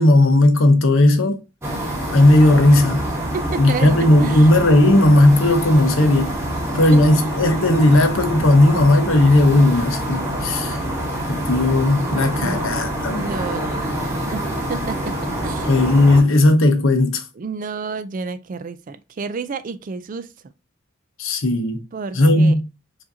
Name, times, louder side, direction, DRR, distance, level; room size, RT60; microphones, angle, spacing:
voice 1, 0.0-1.4 2.1-3.1 3.6-6.4 6.7-10.8 11.3-13.4 15.7-17.2 21.2-21.8 22.1-22.6, left 1 dB, 70° left, 0.8 m, -15 dB
sound 1, 1.6-16.2, right 1 dB, 10° right, 0.9 m, -26 dB
voice 2, 3.3-4.5 6.9-7.0 12.3-12.7 13.2-14.4 14.7-15.7 17.4-20.5 21.9-22.6, right 4 dB, 40° right, 0.3 m, -31 dB
sound 2, 7.7-15.2, left 2 dB, 20° left, 1.1 m, -39 dB
4.8 x 2.6 x 2.6 m
head